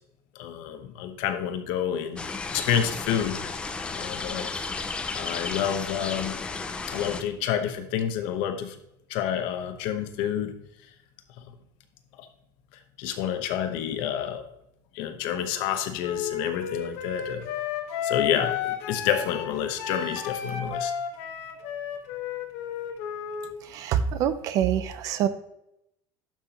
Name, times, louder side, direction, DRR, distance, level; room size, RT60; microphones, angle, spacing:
voice 1, 0.3-2.2 2.5-3.4 3.9-4.5 5.1-6.4 6.9-8.8 9.1-10.5 11.4-11.5 12.2-12.3 13.0-14.5 14.9-17.5 18.0-20.9, left 9 dB, 60° left, 8 dB, 1.0 m, -29 dB
sound 1, 2.2-7.2, left 4 dB, 10° left, 0.4 m, -33 dB
Wind instrument woodwind instrument, 16.0-23.5, left 8 dB, 80° left, 1.4 m, -32 dB
voice 2, 23.7-25.3, right 9 dB, 40° right, 12 dB, 0.5 m, -25 dB
12.0 x 5.8 x 2.9 m, 0.81 s
cardioid pair, 175°, 9 cm